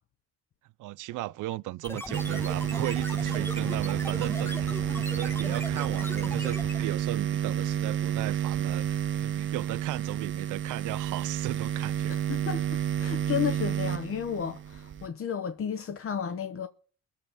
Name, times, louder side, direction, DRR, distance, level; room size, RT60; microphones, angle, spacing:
voice 1, 0.8-4.7 5.0-12.2, right 18 dB, 85° right, 0.5 m, -36 dB
sound 1, 1.8-7.0, left 1 dB, 10° left, 0.8 m, -38 dB
sound 2, 2.1-15.1, right 9 dB, 40° right, 0.6 m, -30 dB
voice 2, 12.1-16.7, left 8 dB, 45° left, 0.8 m, -33 dB
22.0 x 7.4 x 4.1 m
cardioid pair, 90°, 30 cm